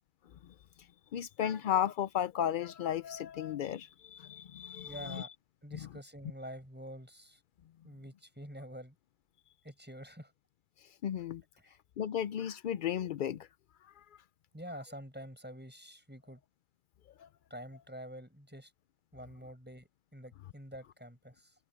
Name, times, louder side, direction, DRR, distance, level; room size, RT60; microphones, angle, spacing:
voice 1, 1.1-5.3 11.0-11.4 12.0-13.5 17.2-17.3, left 9 dB, 90° left, 0.4 m, -34 dB
voice 2, 4.8-5.3 5.6-7.4 7.8-9.0 9.6-10.3 11.6-11.7 14.5-16.4 17.5-18.7 19.1-21.5, equal, 5° right, 7.4 m, -47 dB
omnidirectional pair, 1.4 m